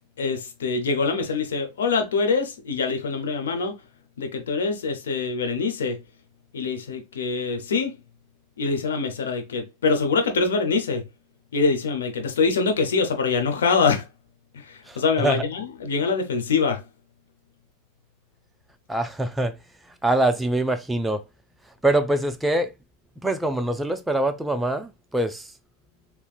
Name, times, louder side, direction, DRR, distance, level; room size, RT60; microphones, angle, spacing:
voice 1, 0.2-3.8 4.2-6.0 6.5-7.9 8.6-11.0 11.5-14.1 14.5-16.8, left 4 dB, 85° left, 0.8 m, -24 dB
voice 2, 14.9-15.4 18.9-19.5 19.9-21.2 21.8-22.7 23.2-25.5, right 1 dB, 5° right, 0.4 m, -24 dB
3.6 x 3.0 x 2.4 m
hypercardioid pair, 105°, 0 cm